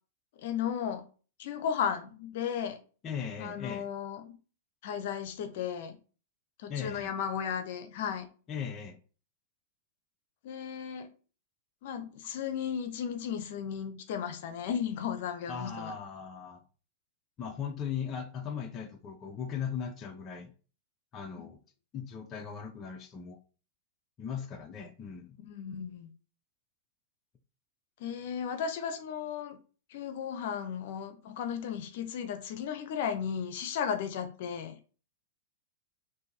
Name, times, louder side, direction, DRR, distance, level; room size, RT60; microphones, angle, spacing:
voice 1, 0.4-1.1 1.4-2.8 3.4-4.4 4.8-6.0 6.6-8.3 10.4-11.1 11.8-15.9 25.5-26.1 28.0-29.6 29.9-34.8, left 8 dB, 60° left, 0.8 m, -35 dB
voice 2, 3.0-3.9 6.7-7.1 8.5-9.0 15.5-16.6 17.4-20.5 21.1-21.6 21.9-23.4 24.2-25.4, left 7 dB, 30° left, 0.6 m, -38 dB
4.1 x 2.7 x 4.0 m
hypercardioid pair, 135°, 0 cm